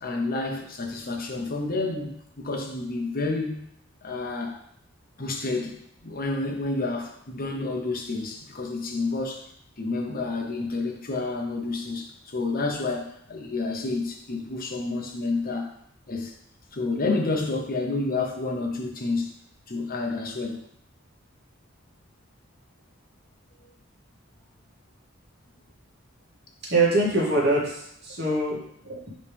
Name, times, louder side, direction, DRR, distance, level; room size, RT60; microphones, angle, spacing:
voice 1, 0.0-3.6 4.0-4.6 5.2-9.4 9.8-15.7 16.1-16.4 16.7-19.3 19.7-20.6 23.6-23.7, left 3 dB, 45° left, 2 dB, 0.9 m, -29 dB
voice 2, 26.7-29.1, right 2 dB, 55° right, -5 dB, 2.1 m, -24 dB
8.4 x 3.3 x 3.4 m, 0.69 s
head